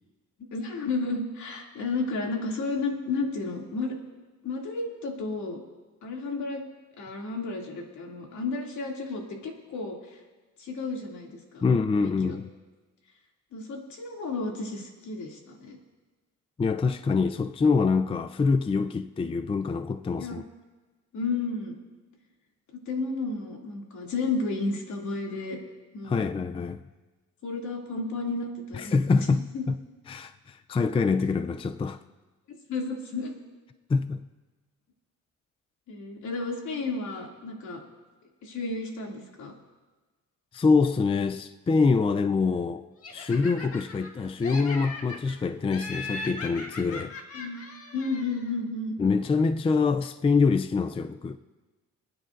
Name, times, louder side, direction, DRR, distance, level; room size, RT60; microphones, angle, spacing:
voice 1, 0.5-4.0 4.4-5.6 6.0-6.6 7.0-10.2 10.6-11.6 12.0-12.4 13.5-15.8 20.2-20.4 21.1-21.8 22.7-25.6 25.9-26.2 27.4-29.7 32.5-33.3 35.9-37.8 38.4-39.5 47.3-47.6 47.9-49.0, left 3 dB, 70° left, 2.6 m, -32 dB
voice 2, 11.6-12.5 16.6-20.4 26.0-26.8 28.7-29.8 30.1-32.0 33.9-34.2 40.5-47.2 49.0-51.4, left 4 dB, 20° left, 0.4 m, -25 dB
Laughter, 43.0-44.1 44.4-45.3 45.7-48.5, left 3 dB, 50° left, 1.8 m, -39 dB
27.0 x 9.5 x 2.6 m
cardioid pair, 90°, 30 cm